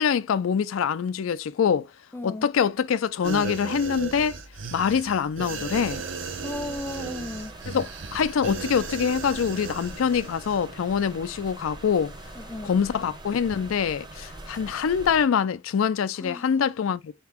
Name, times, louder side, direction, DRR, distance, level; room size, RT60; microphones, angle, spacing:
voice 1, 0.0-1.9 2.2-4.4 4.7-6.0 7.7-12.1 12.6-17.1, left 7 dB, 85° left, 0.4 m, -25 dB
voice 2, 2.1-2.5 6.4-7.6 12.4-12.8 16.2-16.5, left 2 dB, 10° left, 0.4 m, -35 dB
sound 1, 3.2-10.6 10.9-11.1, right 5 dB, 70° right, 0.7 m, -36 dB
sound 2, 5.7-15.2, right 2 dB, 20° right, 0.7 m, -43 dB
4.3 x 2.9 x 3.4 m
head